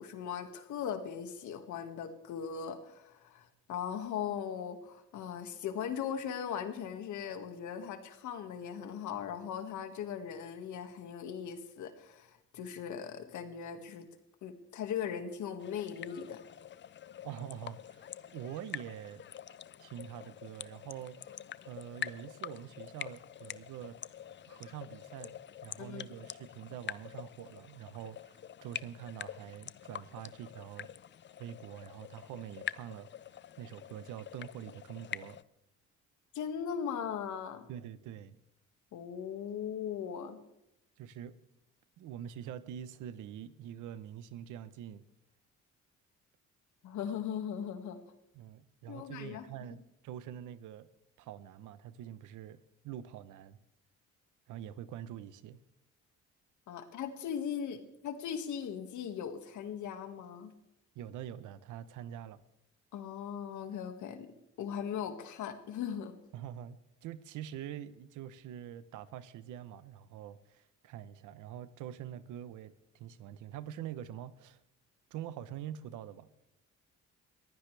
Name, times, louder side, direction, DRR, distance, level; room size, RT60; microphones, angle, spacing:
voice 1, 0.0-14.1 14.4-16.4 25.8-26.1 36.3-37.7 38.9-40.4 46.8-48.0 48.9-49.5 56.7-60.5 62.9-64.3 64.6-66.1, left 8 dB, 75° left, 7 dB, 2.1 m, -39 dB
sound 1, 15.6-35.4, left 9 dB, 40° left, 0.5 m, -46 dB
voice 2, 17.2-19.2 19.8-21.3 21.7-24.0 24.5-30.9 31.4-33.1 33.6-35.4 37.7-38.4 41.0-41.4 42.0-45.0 48.3-50.9 51.2-52.6 52.8-53.6 54.5-55.6 60.9-62.4 66.3-74.6 75.1-76.3, right 10 dB, 90° right, 14 dB, 1.0 m, -45 dB
22.0 x 15.5 x 3.4 m, 0.84 s
cardioid pair, 105°, 30 cm